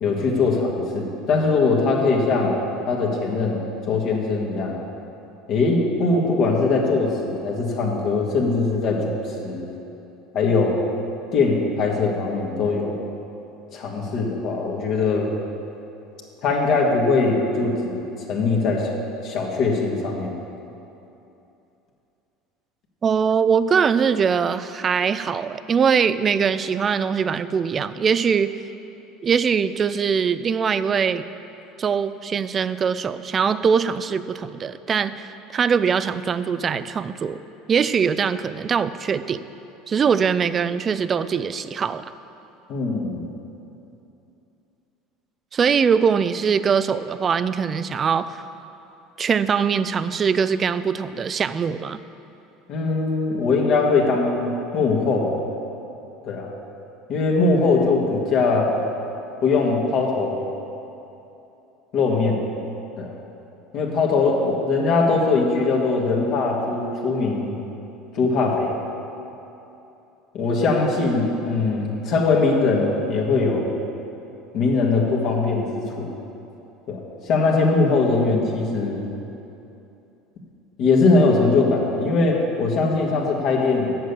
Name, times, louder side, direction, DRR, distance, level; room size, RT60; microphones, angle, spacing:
voice 1, 0.0-2.5 2.9-3.6 3.9-4.8 5.5-9.1 9.4-9.7 10.3-10.8 11.3-13.0 13.7-15.3 16.4-18.0 18.3-18.9 19.2-20.3 42.7-43.2 52.7-55.4 56.2-56.5 57.1-58.7 59.4-60.4 61.9-62.4 63.0-63.1 63.7-67.6 68.1-68.8 70.3-73.7 74.5-76.1 76.9-79.0 80.8-84.0, left 3 dB, 55° left, -1 dB, 1.8 m, -21 dB
voice 2, 23.0-28.5 29.2-31.2 31.8-37.4 37.7-39.5 39.9-42.0 45.5-48.4 49.2-52.0, right 6 dB, 35° right, 14 dB, 0.4 m, -22 dB
7.8 x 6.7 x 8.1 m, 2.9 s
hypercardioid pair, 85°, 0 cm